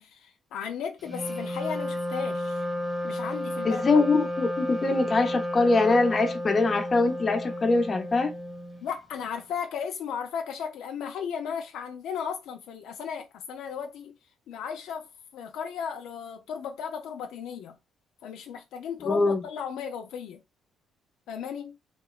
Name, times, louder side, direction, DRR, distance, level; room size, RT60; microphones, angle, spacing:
voice 1, 0.0-2.6 3.0-4.0 8.8-14.1 14.5-17.8 18.2-20.4 21.3-21.8, left 7 dB, 85° left, 0.4 m, -35 dB
Wind instrument woodwind instrument, 1.0-8.9, left 1 dB, 10° right, 0.6 m, -32 dB
voice 2, 3.6-8.3 19.1-19.4, left 3 dB, 35° left, 0.6 m, -23 dB
2.8 x 2.2 x 2.3 m
cardioid pair, 90°, 0 cm